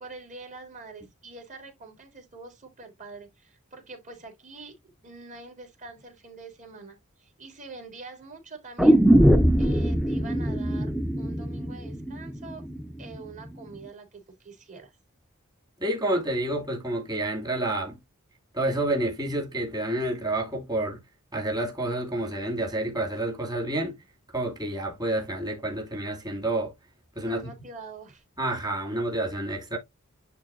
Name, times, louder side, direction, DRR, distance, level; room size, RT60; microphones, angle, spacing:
voice 1, 0.0-9.0 9.6-12.6 13.0-14.9 27.2-28.2, right 3 dB, 35° right, 4.2 m, -45 dB
sound 1, 8.8-12.8 13.1-13.2, equal, ahead, 0.8 m, -21 dB
voice 2, 15.8-18.0 18.5-21.0 21.3-24.0 24.3-26.7 27.2-27.5 28.4-29.8, right 1 dB, 20° right, 2.7 m, -29 dB
11.0 x 4.0 x 2.7 m
head